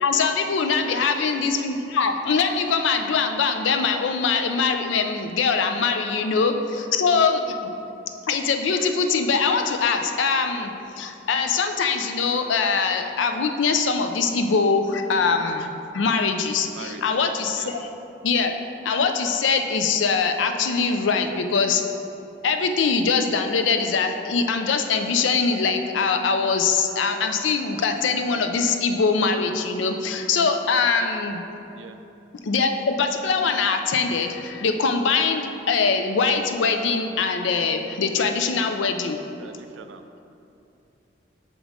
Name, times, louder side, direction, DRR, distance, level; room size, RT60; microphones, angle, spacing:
voice 1, 0.0-7.7 8.3-17.9 18.2-18.5 18.8-21.8 22.4-31.4 32.4-39.2, left 5 dB, 90° left, 6 dB, 0.4 m, -23 dB
voice 2, 16.7-17.2 17.5-17.7 31.7-32.0 39.4-40.0, right 5 dB, 80° right, 8 dB, 0.4 m, -41 dB
6.0 x 5.3 x 3.7 m, 2.8 s
head